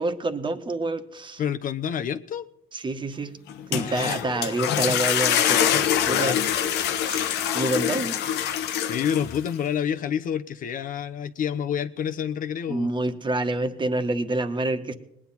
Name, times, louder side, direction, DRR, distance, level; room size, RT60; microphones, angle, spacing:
voice 1, 0.0-1.4 2.7-3.3 3.7-5.7 6.0-6.3 7.0-8.5 12.7-14.9, right 2 dB, 30° right, 1.5 m, -27 dB
voice 2, 1.4-2.5 3.7-4.2 6.1-6.4 8.8-12.9, left 8 dB, 55° left, 0.9 m, -28 dB
sound 1, 3.5-9.5, left 9 dB, 85° left, 1.1 m, -25 dB
20.0 x 10.0 x 4.3 m
cardioid pair, 110°, 17 cm